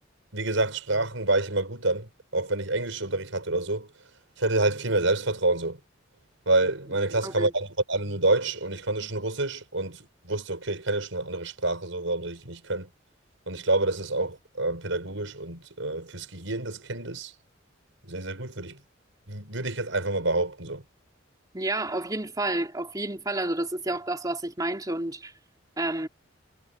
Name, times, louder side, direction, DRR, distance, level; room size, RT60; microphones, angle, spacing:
voice 1, 0.3-3.9 4.4-5.8 6.5-12.9 13.5-17.3 18.0-18.8 19.3-20.8, right 2 dB, 80° right, 5.6 m, -28 dB
voice 2, 21.5-25.3 25.8-26.1, right 2 dB, 20° right, 3.4 m, -30 dB
head